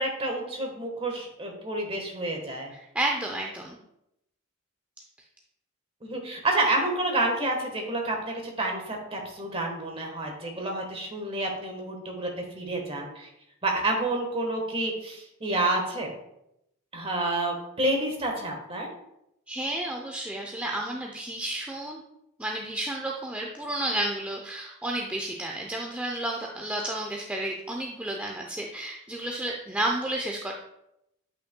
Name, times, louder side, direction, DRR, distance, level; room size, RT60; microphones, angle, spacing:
voice 1, 0.0-2.7 6.0-13.3 13.6-16.1 16.9-18.9, right 2 dB, 30° right, 1 dB, 1.3 m, -29 dB
voice 2, 2.7-3.8 19.5-22.0 22.4-30.5, right 1 dB, 5° right, 0 dB, 0.5 m, -31 dB
8.9 x 5.6 x 2.2 m, 0.81 s
head